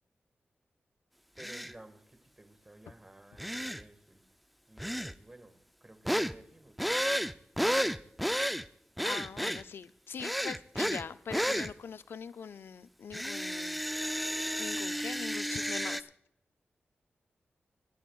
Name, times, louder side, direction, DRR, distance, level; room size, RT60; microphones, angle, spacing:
sound 1, 1.4-1.7 3.4-3.8 4.8-5.1 6.1-6.3 6.8-8.6 9.0-9.6 10.2-11.0 11.3-11.7 13.1-16.0, equal, ahead, 0.4 m, -32 dB
voice 1, 1.4-4.2 4.7-7.1, right 1 dB, 20° right, 7 dB, 1.6 m, -55 dB
voice 2, 9.0-13.8 14.6-16.1, left 6 dB, 70° left, 13 dB, 0.4 m, -43 dB
26.5 x 11.0 x 2.3 m, 0.71 s
wide cardioid pair, 105°, 4 cm